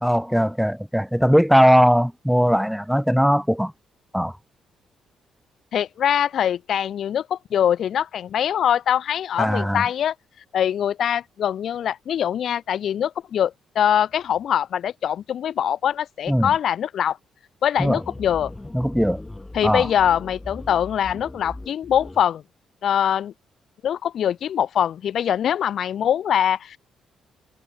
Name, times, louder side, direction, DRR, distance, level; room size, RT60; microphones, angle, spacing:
voice 1, 0.0-3.7 4.1-4.3 9.4-9.8 16.3-16.5 17.8-18.0 18.7-19.2 19.6-19.9, equal, ahead, 0.6 m, -19 dB
voice 2, 5.7-10.1 10.5-17.2 17.6-18.5 19.5-22.4 22.8-23.3 23.8-26.8, left 9 dB, 65° left, 0.4 m, -23 dB
sound 1, 17.8-22.2, left 2 dB, 15° left, 4.1 m, -38 dB
cardioid pair, 90°, 0 cm